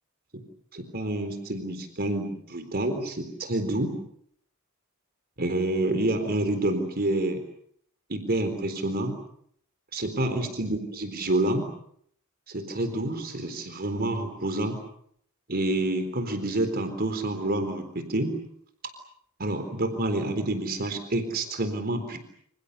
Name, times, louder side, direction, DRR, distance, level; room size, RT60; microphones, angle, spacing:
voice 1, 0.7-3.9 5.4-7.4 8.1-9.2 9.9-11.7 12.5-14.8 15.5-18.3 19.4-22.2, right 1 dB, 45° right, 8 dB, 4.0 m, -28 dB
28.0 x 27.5 x 7.0 m, 0.68 s
head